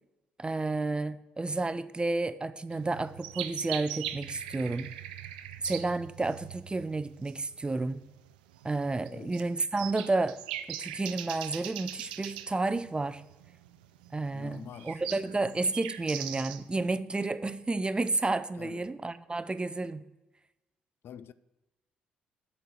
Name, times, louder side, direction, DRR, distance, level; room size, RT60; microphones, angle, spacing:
voice 1, 0.4-4.9 5.6-8.0 8.6-10.4 10.7-13.2 14.1-20.0, right 3 dB, 20° right, 0.5 m, -31 dB
sound 1, 2.7-16.8, right 12 dB, 85° right, 0.4 m, -41 dB
voice 2, 14.3-15.3 18.6-18.9 21.0-21.3, left 8 dB, 55° left, 0.4 m, -46 dB
8.2 x 4.4 x 7.1 m
hypercardioid pair, 45°, 4 cm